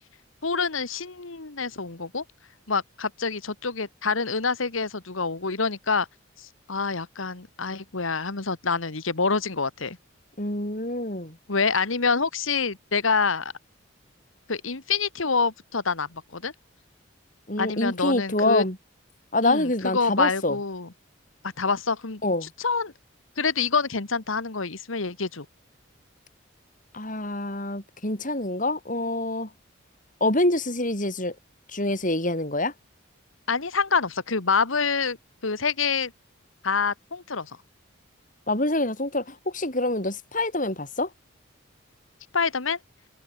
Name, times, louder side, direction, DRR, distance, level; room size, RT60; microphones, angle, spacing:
voice 1, 0.4-2.2 2.7-6.1 6.4-10.0 11.5-13.5 14.5-16.5 17.6-18.6 19.4-20.9 21.4-22.2 22.6-22.9 23.4-25.4 33.5-35.2 35.4-36.1 36.6-37.6 42.3-42.8, left 4 dB, 85° left, 1.7 m, -26 dB
voice 2, 10.4-11.4 17.5-18.8 19.3-20.6 22.2-22.5 26.9-29.5 30.2-31.3 31.7-32.7 38.5-41.1, left 2 dB, 40° left, 6.7 m, -26 dB
open air
head